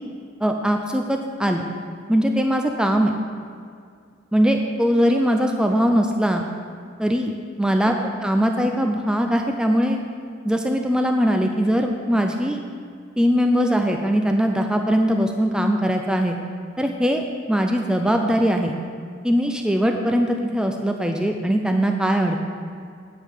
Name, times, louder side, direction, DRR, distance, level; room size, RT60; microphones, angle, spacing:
voice 1, 0.4-1.6 2.1-3.1 4.3-6.4 7.0-7.3 7.6-7.9 8.2-10.0 10.5-12.6 13.2-16.4 16.8-18.8 19.2-22.4, equal, 5° right, 3 dB, 0.4 m, -21 dB
8.9 x 5.5 x 6.3 m, 2.2 s
head